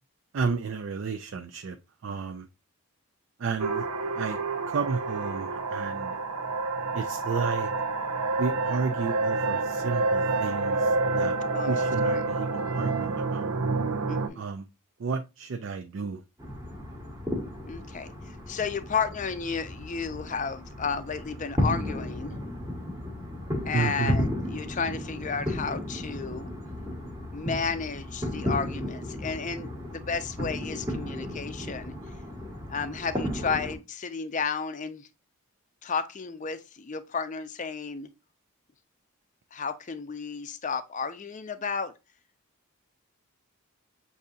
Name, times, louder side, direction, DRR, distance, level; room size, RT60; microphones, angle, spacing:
voice 1, 0.3-1.8 2.0-2.5 3.4-3.9 4.1-4.4 4.7-6.2 6.9-7.7 8.4-11.4 11.6-13.5 14.3-14.7 15.0-16.2 23.7-24.2, right 5 dB, 55° right, 0.4 m, -32 dB
sound 1, 3.6-14.3, right 3 dB, 90° right, 0.7 m, -28 dB
voice 2, 14.1-14.4 17.7-22.4 23.7-26.5 27.3-31.9 32.7-35.1 35.8-38.1 39.5-41.9, left 5 dB, 35° left, 0.5 m, -33 dB
sound 2, 16.4-33.8, left 1 dB, 15° right, 1.0 m, -34 dB
6.8 x 2.7 x 2.4 m
head